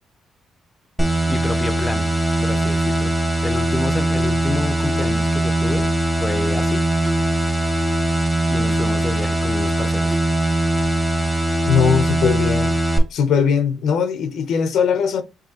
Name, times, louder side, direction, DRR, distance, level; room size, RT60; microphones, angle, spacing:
sound 1, 1.0-13.0, right 1 dB, ahead, 1.0 m, -20 dB
voice 1, 1.3-2.1 2.4-3.1 3.4-6.8 8.5-10.2, left 2 dB, 15° left, 0.6 m, -28 dB
voice 2, 11.7-12.8 13.1-15.2, left 6 dB, 75° left, 0.6 m, -19 dB
4.8 x 2.7 x 2.8 m
cardioid pair, 90°, 0 cm